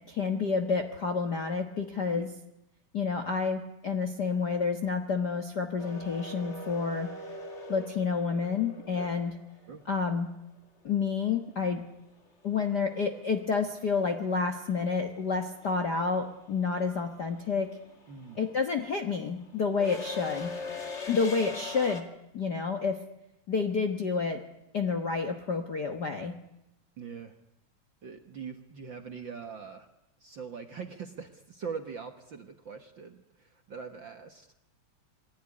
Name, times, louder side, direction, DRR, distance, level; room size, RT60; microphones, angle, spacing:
voice 1, 0.1-2.3 2.9-7.1 7.7-9.4 9.9-10.3 10.8-11.9 12.4-17.7 18.4-20.6 21.1-22.1 22.3-23.0 23.5-24.4 24.7-26.4, left 5 dB, 50° left, 5 dB, 1.2 m, -29 dB
sound 1, 5.8-9.8 12.3-12.4 13.6-14.0 14.2-22.0, left 3 dB, 25° left, 1.9 m, -41 dB
voice 2, 18.1-18.4 27.0-27.4 28.0-29.9 30.2-34.5, right 6 dB, 50° right, 6 dB, 1.5 m, -42 dB
27.5 x 20.0 x 9.8 m, 0.89 s
omnidirectional pair, 3.6 m